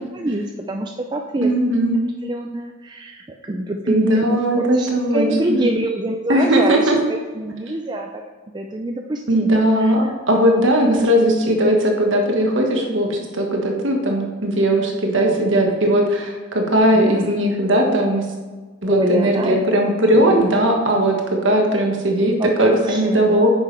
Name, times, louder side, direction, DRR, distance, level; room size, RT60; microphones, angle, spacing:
voice 1, 0.1-1.8 2.2-4.9 5.1-8.2 8.5-10.1 10.9-11.0 15.0-15.4 16.9-17.3 18.9-19.6 20.1-20.5 22.4-23.5, right 1 dB, 20° right, 2 dB, 0.4 m, -25 dB
voice 2, 1.4-2.0 3.9-5.6 6.3-7.0 9.3-18.3 18.8-23.5, right 1 dB, 60° right, 1 dB, 1.4 m, -18 dB
9.0 x 6.1 x 3.3 m, 1.4 s
head